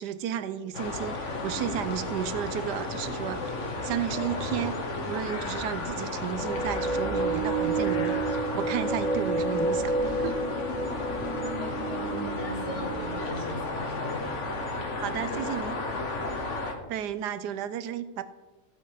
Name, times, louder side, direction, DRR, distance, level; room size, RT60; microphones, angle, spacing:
voice 1, 0.0-3.6 3.8-4.8 5.1-10.4 15.0-15.8 16.9-18.2, right 9 dB, 75° right, 13 dB, 1.2 m, -33 dB
sound 1, 0.7-16.7, left 2 dB, 45° left, 1.4 m, -33 dB
sound 2, 6.4-13.7, right 3 dB, 40° right, 2.8 m, -30 dB
voice 2, 11.2-14.4 15.0-16.0 16.7-16.9, left 2 dB, 70° left, 4 dB, 2.0 m, -41 dB
15.0 x 5.3 x 4.8 m, 1.1 s
omnidirectional pair, 1.9 m